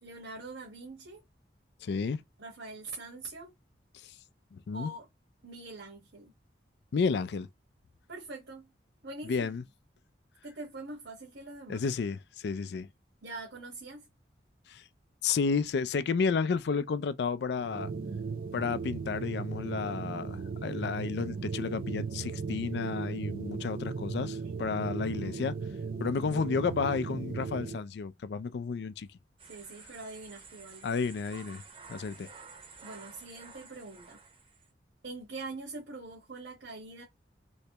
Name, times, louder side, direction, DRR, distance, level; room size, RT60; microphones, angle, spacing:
voice 1, 0.0-1.2 2.4-3.5 4.7-5.1 5.4-6.3 8.1-8.7 9.0-9.5 10.4-11.8 13.2-14.1 24.4-24.7 29.5-31.0 32.8-34.2 35.0-37.0, right 3 dB, 80° right, 1.3 m, -44 dB
voice 2, 1.8-2.2 4.0-4.1 4.5-4.9 6.9-7.5 9.2-9.6 11.7-12.9 14.7-14.8 15.2-17.9 18.5-25.6 26.0-29.1 30.8-31.6 31.9-32.3, left 5 dB, 65° left, 0.3 m, -32 dB
sound 1, 17.6-27.8, right 5 dB, 50° right, 0.4 m, -37 dB
sound 2, 29.4-34.7, right 5 dB, 30° right, 0.7 m, -51 dB
3.3 x 3.1 x 2.8 m
head